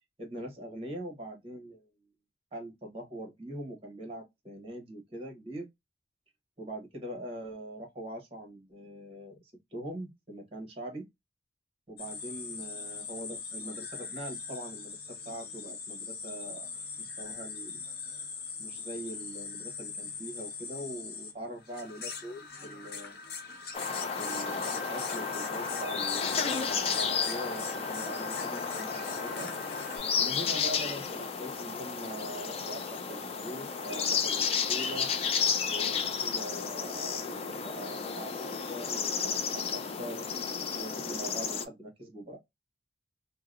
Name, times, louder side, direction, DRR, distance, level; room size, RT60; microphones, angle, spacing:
voice 1, 0.2-1.9 2.5-5.7 6.6-11.1 11.9-16.7 17.0-17.8 18.6-23.2 24.2-29.5 30.2-35.1 35.7-40.3 40.8-42.4, right 1 dB, 30° right, 0.9 m, -42 dB
sound 1, 12.0-30.0, left 4 dB, 55° left, 0.7 m, -41 dB
sound 2, 23.7-41.6, left 6 dB, 30° left, 0.3 m, -32 dB
2.7 x 2.0 x 2.3 m
head